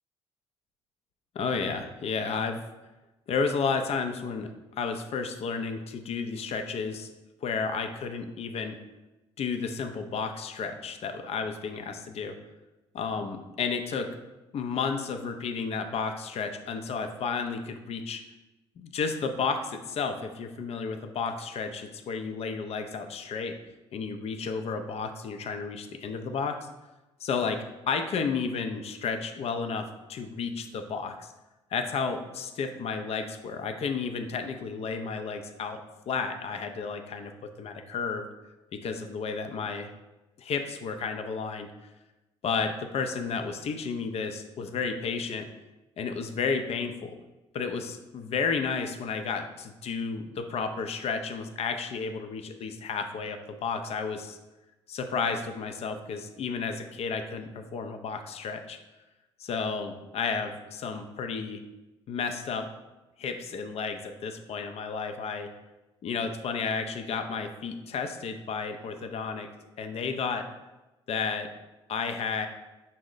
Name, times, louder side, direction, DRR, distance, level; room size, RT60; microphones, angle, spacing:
voice 1, 1.3-2.6 3.3-4.5 4.8-7.1 7.4-8.8 9.4-12.4 12.9-14.1 14.5-18.2 18.8-23.6 23.9-26.6 27.2-31.3 31.7-35.8 36.1-38.3 38.7-39.9 40.4-41.7 42.4-45.5 46.0-47.2 47.5-54.4 54.9-58.8 59.4-61.6 62.1-62.7 63.2-65.5 66.0-69.5 69.8-70.5 71.1-71.5 71.9-72.5, left 5 dB, 45° left, 7 dB, 0.5 m, -32 dB
5.1 x 2.1 x 3.8 m, 1.0 s
hypercardioid pair, 55°, 14 cm